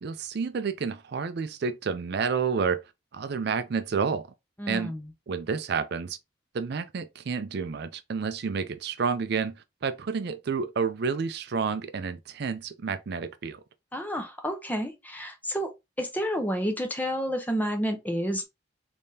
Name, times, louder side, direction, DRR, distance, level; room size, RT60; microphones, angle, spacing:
voice 1, 0.0-2.8 3.1-4.3 4.7-4.9 5.3-6.2 6.5-9.5 9.8-13.6, right 5 dB, 55° right, 0.4 m, -30 dB
voice 2, 4.6-5.1 13.9-15.7 16.0-18.4, equal, 10° left, 0.6 m, -30 dB
3.5 x 3.3 x 2.7 m
head